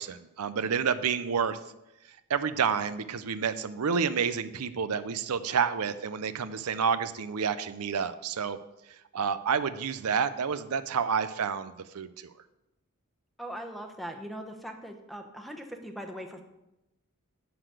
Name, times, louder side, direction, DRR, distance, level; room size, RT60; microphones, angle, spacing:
voice 1, 0.0-1.6 2.3-8.6 9.1-12.3, right 6 dB, 90° right, 13 dB, 0.5 m, -29 dB
voice 2, 13.4-16.4, equal, ahead, 4 dB, 0.9 m, -40 dB
11.0 x 4.0 x 7.7 m, 0.93 s
head